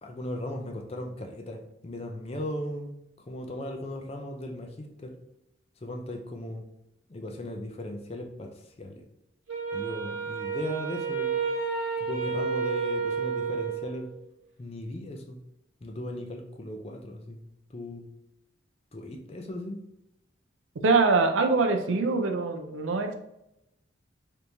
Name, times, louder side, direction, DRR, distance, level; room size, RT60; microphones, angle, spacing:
voice 1, 0.0-2.9 3.3-5.1 5.8-6.6 7.1-9.0 9.7-11.4 12.0-14.1 14.6-15.4 15.8-17.4 17.7-18.1 18.9-19.8, left 1 dB, 30° left, 3 dB, 0.4 m, -37 dB
Wind instrument woodwind instrument, 9.5-14.1, right 5 dB, 75° right, 1.0 m, -31 dB
voice 2, 20.8-23.1, right 3 dB, 90° right, 6 dB, 0.5 m, -23 dB
3.4 x 3.0 x 2.6 m, 0.84 s
head